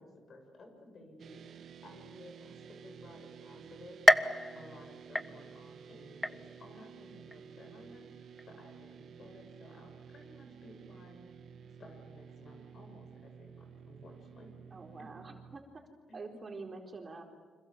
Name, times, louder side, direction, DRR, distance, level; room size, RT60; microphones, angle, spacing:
voice 1, 0.0-4.2 4.5-11.4 11.8-14.5 15.0-15.1 16.1-16.4, left 1 dB, 50° left, 4 dB, 7.6 m, -55 dB
sound 1, 1.2-15.6, right 7 dB, 60° right, 1.3 m, -52 dB
sound 2, 4.1-5.8 6.2-6.8 7.3-7.4 8.4-8.5, left 1 dB, 10° left, 0.9 m, -29 dB
voice 2, 14.7-15.8 16.1-17.2, right 3 dB, 30° right, 2 dB, 4.3 m, -46 dB
29.0 x 26.5 x 7.5 m, 1.5 s
cardioid pair, 90°, 0 cm